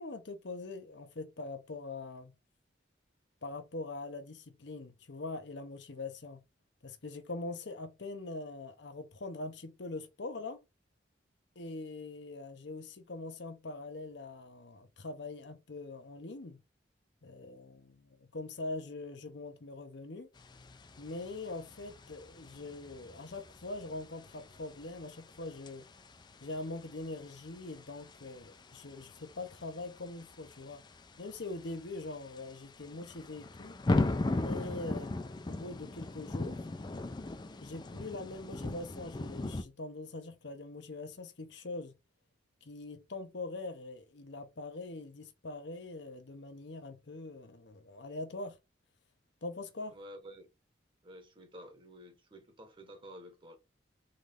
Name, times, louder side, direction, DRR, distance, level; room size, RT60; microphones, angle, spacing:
voice 1, 0.0-2.3 3.4-6.4 6.8-10.6 11.6-16.6 17.2-20.3 21.0-25.8 26.4-30.8 31.2-33.8 34.3-36.6 37.6-41.9 42.6-48.6 49.4-50.0, left 2 dB, 65° left, 0.8 m, -43 dB
sound 1, 20.4-39.6, left 2 dB, 25° left, 0.4 m, -39 dB
voice 2, 49.9-50.5 51.0-53.6, equal, 30° right, 1.1 m, -51 dB
3.9 x 3.2 x 3.4 m
head